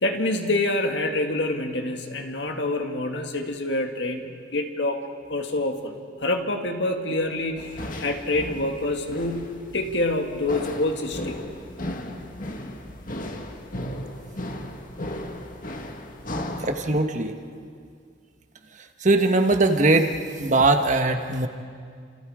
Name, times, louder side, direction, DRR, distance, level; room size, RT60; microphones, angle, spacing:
voice 1, 0.0-5.0 5.3-11.5, left 2 dB, 65° left, 4 dB, 2.2 m, -27 dB
sound 1, 7.6-17.0, left 1 dB, 45° left, 1.9 m, -35 dB
voice 2, 16.6-17.4 18.8-21.5, right 2 dB, 40° right, 6 dB, 1.4 m, -21 dB
30.0 x 27.5 x 5.0 m, 2.2 s
head